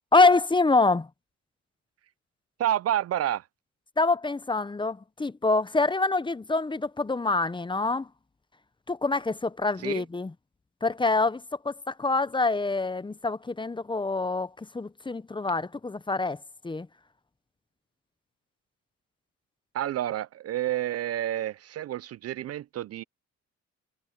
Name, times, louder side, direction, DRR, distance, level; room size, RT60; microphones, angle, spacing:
voice 1, 0.1-1.1 4.0-8.1 8.9-10.3 10.8-16.4 16.6-16.9, left 3 dB, 15° left, 0.8 m, -25 dB
voice 2, 2.6-3.4 9.8-10.0 19.7-23.0, right 12 dB, 55° right, 0.5 m, -29 dB
cardioid pair, 90°, 30 cm